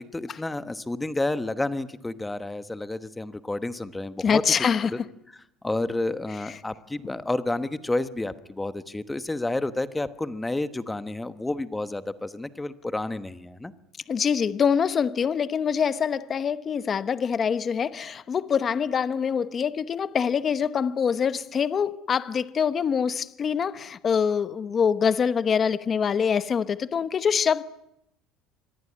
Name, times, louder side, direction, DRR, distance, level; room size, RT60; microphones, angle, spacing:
voice 1, 0.0-4.4 5.6-13.7, left 2 dB, 10° left, 1.1 m, -30 dB
voice 2, 4.2-4.9 6.4-6.6 14.1-27.6, left 7 dB, 30° left, 0.9 m, -25 dB
26.0 x 22.0 x 9.8 m
cardioid pair, 145°, 0 cm